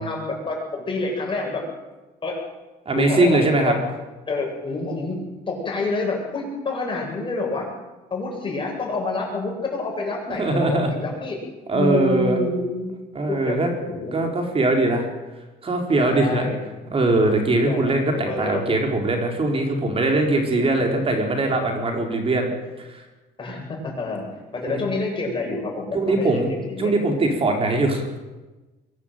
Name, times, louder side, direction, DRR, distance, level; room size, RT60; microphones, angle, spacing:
voice 1, 0.0-1.7 2.2-2.4 2.9-3.4 3.7-3.8 4.3-5.2 5.5-7.7 8.1-11.4 11.7-12.9 13.3-13.6 13.9-14.1 16.0-16.6 17.7-18.8 20.6-20.8 23.4-24.2 24.5-26.9, left 3 dB, 30° left, 0 dB, 8.0 m, -28 dB
voice 2, 2.9-3.7 10.3-10.9 11.7-12.4 13.1-13.7 14.1-15.1 15.6-16.5 16.9-22.5 22.8-22.9 24.7-24.8 25.9-26.5 26.8-28.2, right 2 dB, 35° right, 2 dB, 4.6 m, -21 dB
23.5 x 12.0 x 9.3 m, 1.2 s
cardioid pair, 110°, 17 cm